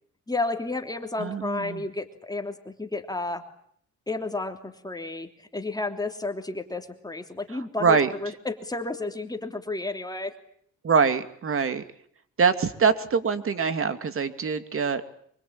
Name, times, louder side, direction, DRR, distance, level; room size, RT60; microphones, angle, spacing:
voice 1, 0.3-3.4 4.1-10.3, left 2 dB, 15° left, 5 dB, 3.1 m, -32 dB
voice 2, 1.2-1.8 7.5-8.1 10.8-11.8 12.4-15.0, right 5 dB, 45° right, 10 dB, 2.6 m, -24 dB
25.5 x 23.5 x 8.8 m, 0.66 s
cardioid pair, 90°, 30 cm